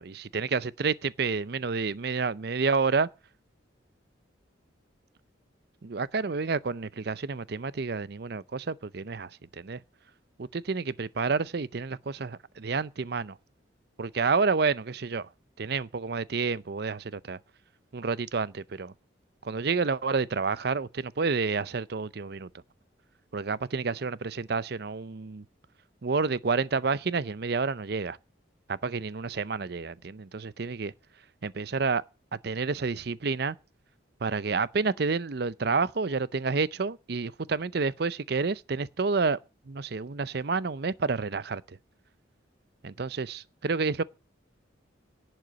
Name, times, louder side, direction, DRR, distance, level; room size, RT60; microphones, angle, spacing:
voice 1, 0.0-3.1 5.8-9.8 10.4-13.4 14.0-15.3 15.6-17.4 17.9-18.9 19.4-22.5 23.3-25.4 26.0-28.2 28.7-30.9 31.4-32.0 32.4-33.6 34.2-39.4 39.7-41.8 42.8-44.0, right 4 dB, 55° right, 0.6 m, -29 dB
11.0 x 7.9 x 9.1 m
head